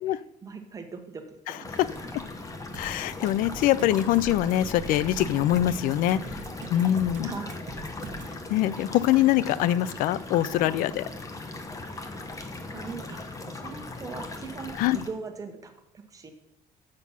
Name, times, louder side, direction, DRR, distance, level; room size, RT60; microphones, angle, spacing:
voice 1, 0.0-2.1 7.2-7.6 12.7-16.3, right 4 dB, 25° right, 5 dB, 1.2 m, -41 dB
sound 1, 1.6-15.1, left 2 dB, 25° left, 1.0 m, -38 dB
voice 2, 2.7-6.4 6.7-7.3 8.5-11.0 14.8-15.0, left 13 dB, 75° left, 18 dB, 0.4 m, -23 dB
sound 2, 2.7-8.4, right 5 dB, 60° right, 1.1 m, -42 dB
7.5 x 6.0 x 5.6 m, 0.80 s
cardioid pair, 125°, 14 cm